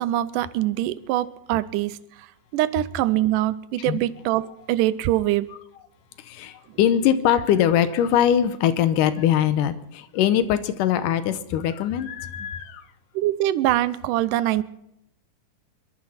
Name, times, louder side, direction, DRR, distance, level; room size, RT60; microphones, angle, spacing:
voice 1, 0.0-2.3 2.5-5.5 13.2-14.6, right 14 dB, 80° right, 15 dB, 2.2 m, -23 dB
voice 2, 6.2-12.8, left 10 dB, 85° left, 12 dB, 2.4 m, -22 dB
23.0 x 12.5 x 4.3 m, 0.79 s
omnidirectional pair, 3.7 m